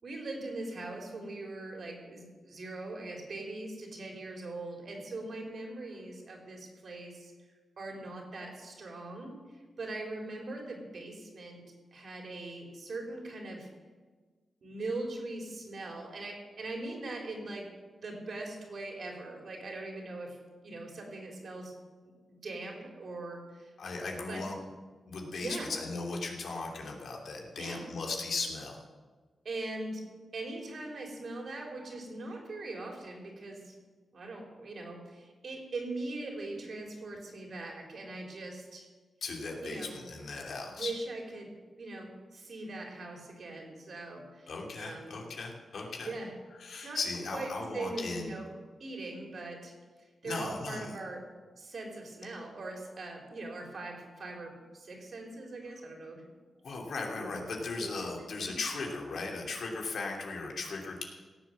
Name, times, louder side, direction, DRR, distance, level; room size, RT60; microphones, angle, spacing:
voice 1, 0.0-7.3 7.8-11.6 11.9-13.7 14.6-17.7 18.0-20.4 20.6-21.7 22.3-23.7 24.3-24.4 25.4-25.7 27.6-27.9 29.5-30.0 30.3-33.7 34.1-38.9 39.6-40.0 40.6-44.5 44.8-45.1 46.0-46.3 46.8-47.0 47.3-48.6 48.8-49.7 50.2-51.2 51.6-56.2 57.1-57.4 57.8-58.0 58.4-58.6, right 2 dB, 60° right, 1 dB, 3.6 m, -41 dB
voice 2, 23.8-24.6 25.1-28.8 39.2-40.9 44.5-46.1 46.6-48.3 50.2-50.9 56.6-61.0, left 3 dB, 70° left, 0 dB, 2.8 m, -37 dB
17.0 x 7.4 x 7.7 m, 1.4 s
cardioid pair, 95°, 0 cm